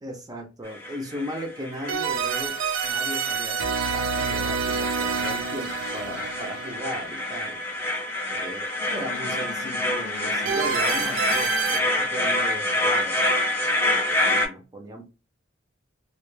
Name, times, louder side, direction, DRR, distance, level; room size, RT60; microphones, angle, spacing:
voice 1, 0.0-7.6 8.3-13.3 14.3-15.0, equal, 20° right, 0.4 m, -37 dB
sound 1, 0.7-14.5, left 1 dB, 15° left, 0.8 m, -27 dB
sound 2, 1.9-7.8 10.5-11.8, right 5 dB, 85° right, 0.4 m, -28 dB
Bowed string instrument, 8.7-12.9, left 5 dB, 55° left, 0.3 m, -40 dB
2.1 x 2.0 x 3.0 m
head